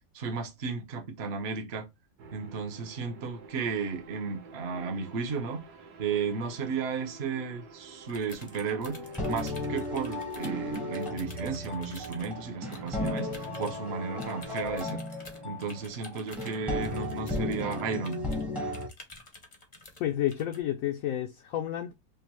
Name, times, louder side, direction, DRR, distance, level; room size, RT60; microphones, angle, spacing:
voice 1, 0.1-1.9 2.3-5.6 6.0-9.0 9.3-15.0 15.4-18.3, right 5 dB, 50° right, 0.8 m, -34 dB
sound 1, 2.2-17.8, right 5 dB, 70° right, 1.3 m, -49 dB
sound 2, 8.1-12.3 12.7-13.8 14.2-18.4 18.7-20.0 20.3-20.6, left 2 dB, 35° left, 0.6 m, -50 dB
sound 3, 8.7-18.9, left 2 dB, ahead, 0.6 m, -35 dB
voice 2, 20.0-21.9, left 12 dB, 70° left, 0.8 m, -30 dB
5.1 x 2.0 x 2.9 m
omnidirectional pair, 1.8 m